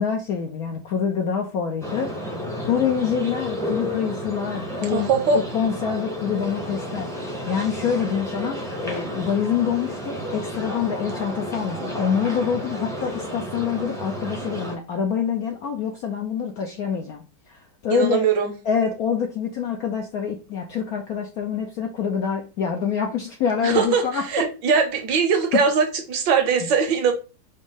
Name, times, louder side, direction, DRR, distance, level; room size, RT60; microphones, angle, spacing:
voice 1, 0.0-2.3 2.6-7.1 7.5-18.3 18.6-24.5 25.5-25.6 26.6-26.7, left 7 dB, 70° left, 0.9 m, -26 dB
sound 1, 1.8-14.8, equal, 5° left, 0.5 m, -31 dB
voice 2, 4.9-5.4 17.9-18.5 23.6-24.0 24.3-27.1, right 5 dB, 70° right, 1.5 m, -21 dB
5.2 x 2.0 x 3.6 m
omnidirectional pair, 2.1 m